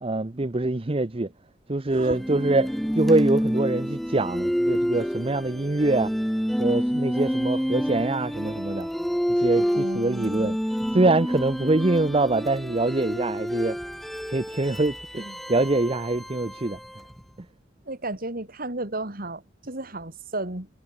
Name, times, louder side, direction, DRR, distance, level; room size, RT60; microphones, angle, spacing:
voice 1, 0.0-1.3 1.7-6.1 6.6-8.9 9.3-10.5 10.9-13.8 14.3-16.8, right 2 dB, 30° right, 0.8 m, -24 dB
sound 1, 2.1-17.2, equal, ahead, 1.1 m, -28 dB
voice 2, 9.7-10.6 17.9-20.7, right 2 dB, 50° right, 3.2 m, -33 dB
head